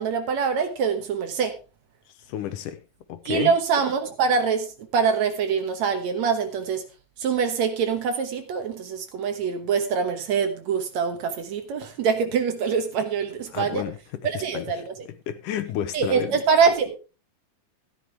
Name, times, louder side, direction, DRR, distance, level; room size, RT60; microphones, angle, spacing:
voice 1, 0.0-1.6 3.3-4.7 4.9-6.8 7.2-13.8 14.2-15.0 15.9-17.0, right 6 dB, 65° right, 2.3 m, -24 dB
voice 2, 2.3-2.8 3.1-3.5 13.5-14.8 15.3-16.3, left 10 dB, 75° left, 2.3 m, -31 dB
13.5 x 11.0 x 3.4 m
omnidirectional pair, 3.9 m